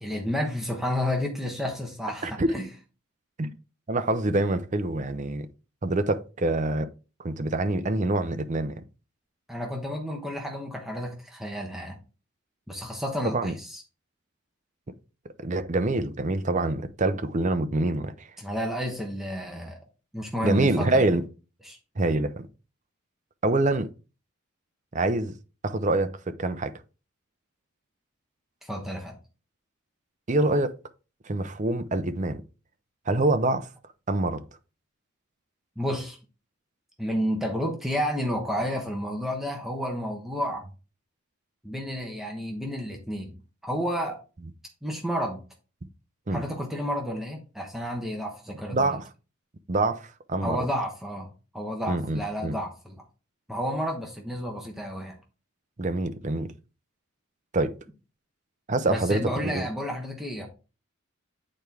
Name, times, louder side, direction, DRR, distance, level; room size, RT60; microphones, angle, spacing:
voice 1, 0.0-2.7 9.5-12.0 12.7-13.8 18.4-19.8 20.1-21.0 21.6-21.8 28.6-29.2 35.8-36.2 37.0-40.6 41.6-44.2 44.8-45.4 46.3-49.0 50.4-53.0 53.5-55.2 58.9-60.5, equal, ahead, 1.0 m, -31 dB
voice 2, 2.2-2.5 3.4-3.5 3.9-5.5 5.8-6.9 7.2-8.8 13.2-13.5 15.4-18.3 20.4-21.2 22.0-22.5 23.4-23.9 24.9-25.3 25.6-26.7 30.3-30.8 31.3-32.4 33.1-33.7 34.1-34.4 46.3-46.4 48.7-49.0 49.7-50.6 51.9-52.5 55.8-56.5 57.5-57.7 58.7-59.7, right 2 dB, 35° right, 0.6 m, -25 dB
8.7 x 4.5 x 3.5 m
head